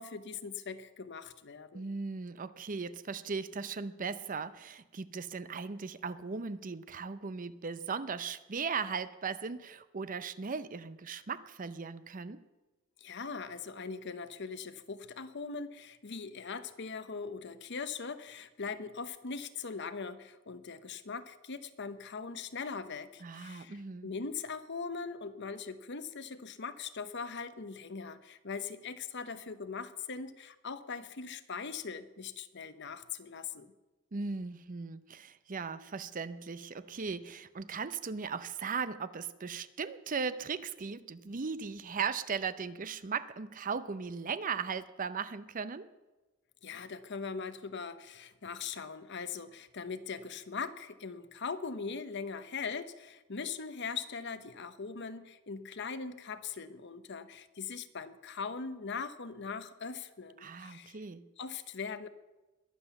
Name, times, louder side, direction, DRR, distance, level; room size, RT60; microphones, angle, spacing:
voice 1, 0.0-1.8 13.0-33.7 46.6-61.0 61.4-62.1, left 5 dB, 60° left, 12 dB, 0.9 m, -41 dB
voice 2, 1.7-12.4 23.2-24.1 34.1-45.9 60.4-61.3, right 5 dB, 40° right, 14 dB, 0.6 m, -38 dB
21.5 x 7.8 x 7.0 m, 1.1 s
head